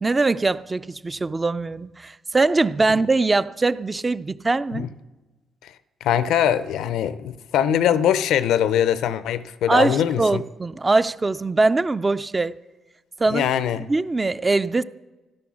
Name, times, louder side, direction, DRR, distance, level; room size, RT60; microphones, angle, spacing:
voice 1, 0.0-4.9 9.7-12.5 13.2-13.5 13.8-14.8, right 3 dB, 25° right, 0.4 m, -22 dB
voice 2, 6.0-10.4 13.3-13.9, left 10 dB, 85° left, 0.6 m, -22 dB
13.0 x 11.5 x 6.2 m
cardioid pair, 90°, 0 cm